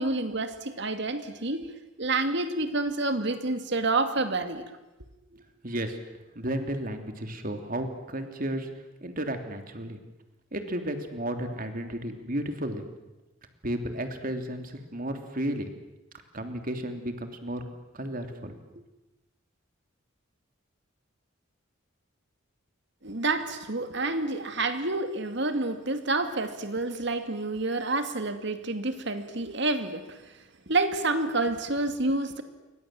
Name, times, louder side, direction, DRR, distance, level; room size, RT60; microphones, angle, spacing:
voice 1, 0.0-1.7 2.0-4.6 23.0-30.3 30.7-32.4, right 2 dB, 60° right, 8 dB, 2.4 m, -28 dB
voice 2, 5.3-6.0 6.3-10.0 10.5-12.9 13.6-15.7 16.3-17.6 17.9-18.8, right 1 dB, 45° right, 6 dB, 3.1 m, -33 dB
28.5 x 24.0 x 7.7 m, 1.0 s
head